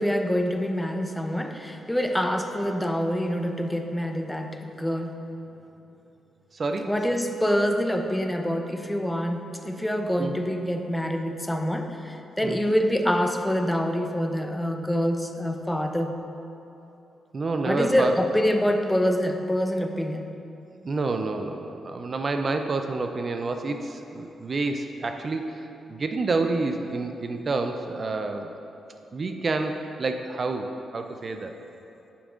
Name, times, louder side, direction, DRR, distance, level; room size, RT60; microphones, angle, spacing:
voice 1, 0.0-5.3 6.9-16.2 17.6-20.3, equal, 10° left, 5 dB, 0.5 m, -26 dB
voice 2, 6.5-6.9 10.2-10.3 12.4-12.6 17.3-18.2 20.8-28.6 29.1-31.6, right 3 dB, 50° right, 6 dB, 0.4 m, -28 dB
8.4 x 5.4 x 2.4 m, 2.9 s
hypercardioid pair, 45°, 0 cm